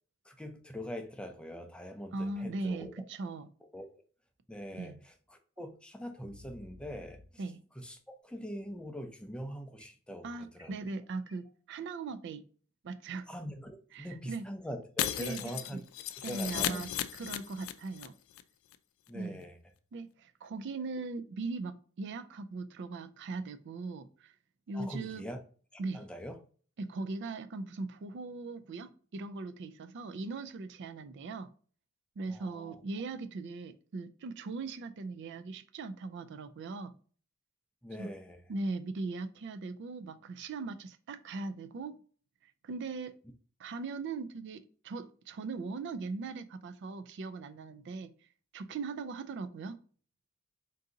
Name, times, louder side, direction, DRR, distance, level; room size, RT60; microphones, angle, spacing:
voice 1, 0.2-2.9 3.7-3.9 4.5-7.4 7.7-10.3 10.5-10.7 13.3-15.8 16.3-16.9 19.1-19.6 24.7-25.4 25.7-26.4 32.3-32.8 37.8-38.4, equal, 5° left, 0.5 m, -43 dB
voice 2, 2.1-3.5 4.7-5.0 7.4-7.6 10.2-12.4 12.8-13.3 13.9-14.5 15.2-15.8 16.2-18.1 19.1-19.4 19.9-24.3 24.7-25.3 25.8-26.0 26.8-31.5 32.2-36.9 38.0-38.1 38.5-42.0 42.4-43.2 43.6-48.1 48.5-49.8, right 3 dB, 55° right, 0.4 m, -39 dB
sound 1, 5.6-5.7 6.2-7.3 9.8-11.5, left 1 dB, 15° right, 1.0 m, -55 dB
Shatter, 15.0-18.1 18.3-18.4 18.7-18.8, left 11 dB, 75° left, 0.4 m, -35 dB
3.8 x 2.7 x 3.7 m
head